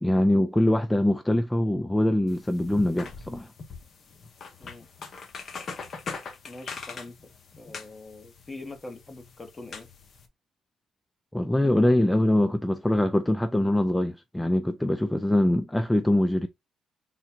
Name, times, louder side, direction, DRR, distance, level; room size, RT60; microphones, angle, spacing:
voice 1, 0.0-3.5 11.3-16.5, left 1 dB, 10° left, 0.4 m, -23 dB
sound 1, 2.3-10.3, left 5 dB, 55° left, 0.9 m, -42 dB
voice 2, 6.4-7.1 7.6-9.9, left 2 dB, 25° left, 1.0 m, -43 dB
3.7 x 2.2 x 4.3 m
cardioid pair, 90°, 0 cm